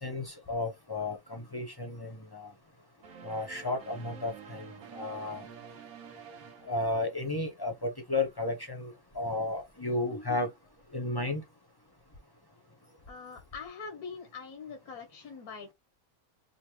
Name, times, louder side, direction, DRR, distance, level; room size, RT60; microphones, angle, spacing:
voice 1, 0.0-2.5 3.2-5.5 6.6-10.5 10.9-11.4, left 2 dB, 25° left, 0.6 m, -33 dB
sound 1, 3.0-7.5, right 7 dB, 70° right, 1.3 m, -49 dB
voice 2, 13.1-15.7, left 5 dB, 90° left, 1.5 m, -43 dB
5.1 x 2.1 x 3.0 m
omnidirectional pair, 1.5 m